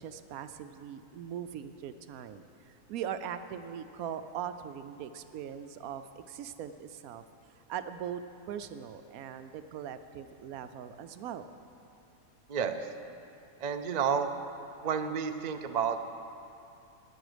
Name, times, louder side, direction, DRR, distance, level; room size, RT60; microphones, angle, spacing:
voice 1, 0.0-7.2 7.7-8.2 8.5-11.5, right 9 dB, 75° right, 10 dB, 1.1 m, -40 dB
voice 2, 12.5-12.8 13.6-14.3 14.8-16.0, right 7 dB, 60° right, 8 dB, 0.4 m, -30 dB
16.0 x 9.8 x 5.1 m, 2.7 s
omnidirectional pair, 1.5 m